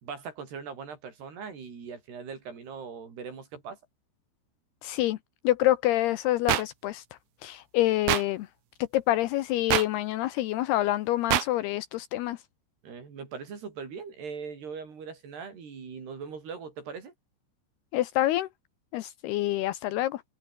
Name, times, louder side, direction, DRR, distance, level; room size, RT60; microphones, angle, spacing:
voice 1, 0.0-3.8 12.8-17.1, right 6 dB, 65° right, 7.1 m, -40 dB
voice 2, 4.8-5.2 5.4-7.0 7.4-8.5 8.8-12.4 17.9-18.5 18.9-20.2, left 15 dB, 75° left, 2.6 m, -27 dB
sound 1, 6.5-6.6 8.1-8.2 9.7-9.9 11.3-11.5, right 14 dB, 80° right, 3.6 m, -23 dB
omnidirectional pair, 5.2 m